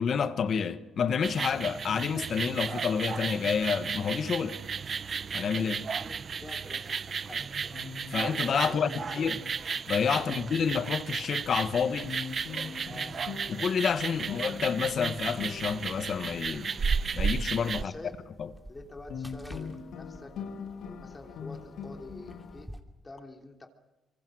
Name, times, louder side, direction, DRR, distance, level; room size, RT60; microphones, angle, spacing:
voice 1, 0.0-4.6 5.3-5.8 8.1-9.4 9.9-12.1 13.5-16.7 17.1-17.9 18.4-18.5, left 6 dB, 55° left, 1.4 m, -29 dB
sound 1, 1.2-17.8, right 6 dB, 45° right, 0.8 m, -34 dB
voice 2, 6.4-7.8 8.6-9.4 10.1-10.4 12.9-13.1 14.2-14.4 17.7-18.1 18.7-20.3 20.8-22.7 23.0-23.7, left 2 dB, 25° left, 3.2 m, -46 dB
sound 2, 7.7-11.6 12.0-18.8 19.1-22.6, left 6 dB, 75° left, 2.5 m, -43 dB
sound 3, 14.8-22.8, equal, ahead, 3.0 m, -51 dB
25.5 x 23.5 x 6.4 m
cardioid pair, 90°, 0 cm